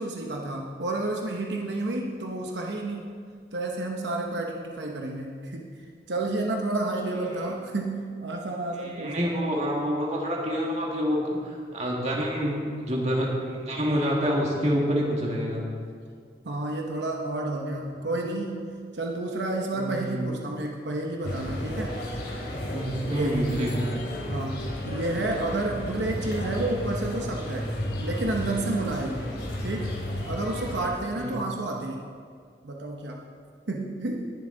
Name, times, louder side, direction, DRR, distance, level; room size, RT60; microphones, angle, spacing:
voice 1, 0.0-3.2 3.5-5.7 6.1-9.3 16.4-18.6 18.9-22.0 23.1-23.4 24.3-27.7 28.0-29.2 29.6-30.0 30.3-32.0 32.6-33.3 33.7-34.3, right 2 dB, 90° right, 1 dB, 1.0 m, -30 dB
voice 2, 7.2-7.5 8.8-15.6 19.7-20.4 22.7-23.9 31.1-31.4, equal, 40° right, -2 dB, 2.0 m, -27 dB
sound 1, 21.2-30.9, equal, 85° left, 2.9 m, -33 dB
19.5 x 7.2 x 3.9 m, 2.1 s
head